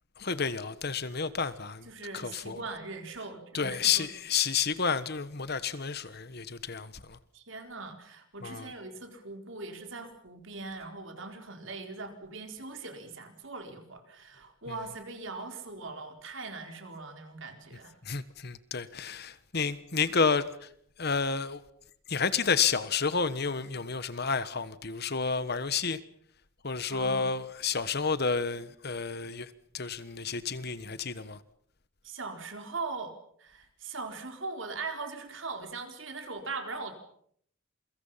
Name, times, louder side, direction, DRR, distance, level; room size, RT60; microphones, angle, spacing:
voice 1, 0.2-2.6 3.5-7.2 8.4-8.7 18.0-20.7 21.0-21.6 22.1-26.0 26.6-31.4, left 5 dB, 50° left, 1.3 m, -30 dB
voice 2, 1.9-4.1 7.3-18.0 26.9-27.3 32.0-33.1 33.4-36.9, right 3 dB, 65° right, 4.3 m, -40 dB
28.0 x 23.5 x 5.8 m
head